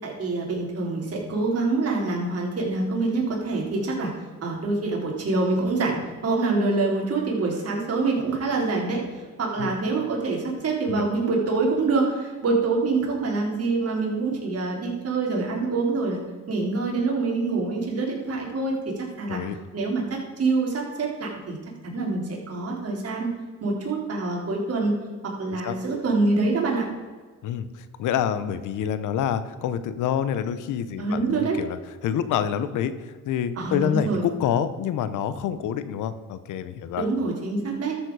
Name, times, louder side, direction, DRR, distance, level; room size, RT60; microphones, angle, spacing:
voice 1, 0.0-4.1 4.4-9.0 9.4-16.2 16.5-19.4 19.7-21.6 21.8-23.3 23.6-24.9 25.2-26.9 31.0-31.6 33.6-34.2 37.0-37.9, right 3 dB, 55° right, -1 dB, 3.7 m, -25 dB
voice 2, 27.4-31.8 32.0-37.0, left 9 dB, 85° left, 12 dB, 0.9 m, -27 dB
13.0 x 7.4 x 4.8 m, 1.4 s
cardioid pair, 90°, 30 cm